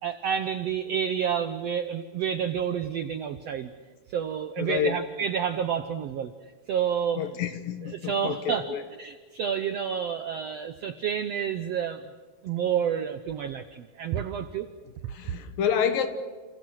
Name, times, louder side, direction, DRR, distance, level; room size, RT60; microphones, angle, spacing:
voice 1, 0.0-3.7 4.1-6.3 6.7-7.2 7.8-12.0 12.4-14.7, right 8 dB, 75° right, 1.5 m, -29 dB
voice 2, 4.6-5.0 7.2-8.8 15.1-16.1, left 8 dB, 80° left, 3.3 m, -28 dB
29.5 x 29.0 x 6.4 m
omnidirectional pair, 4.0 m